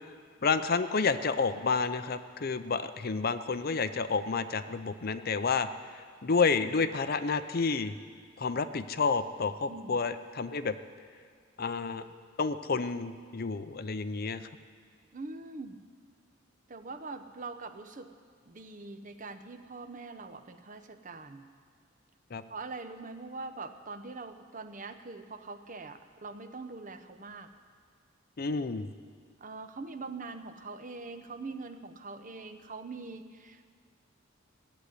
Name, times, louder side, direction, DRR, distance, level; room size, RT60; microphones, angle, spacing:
voice 1, 0.4-5.7 6.2-8.0 8.4-10.7 11.6-12.0 12.4-14.4 22.3-22.4 28.4-28.9, left 4 dB, 50° left, 11 dB, 0.6 m, -30 dB
voice 2, 9.7-10.0 15.1-15.8 16.7-18.1 18.4-21.5 22.5-27.5 29.4-33.7, right 3 dB, 40° right, 8 dB, 0.8 m, -43 dB
15.5 x 8.0 x 9.9 m, 2.1 s
head